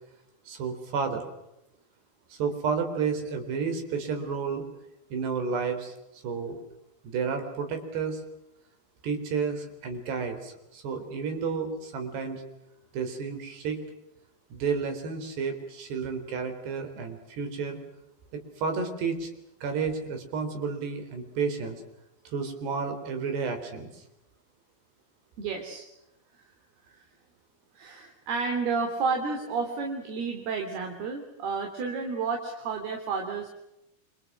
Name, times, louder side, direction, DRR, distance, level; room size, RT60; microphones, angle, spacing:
voice 1, 0.5-1.2 2.4-4.7 5.1-5.9 6.2-6.6 7.0-8.2 9.0-12.4 12.9-13.8 14.5-17.8 18.3-19.3 19.6-21.8 22.3-23.9, right 5 dB, 85° right, 7 dB, 6.1 m, -31 dB
voice 2, 25.4-25.8 26.9-27.0 27.8-33.5, right 4 dB, 70° right, 3 dB, 5.0 m, -31 dB
29.5 x 25.5 x 6.3 m, 0.89 s
omnidirectional pair, 4.7 m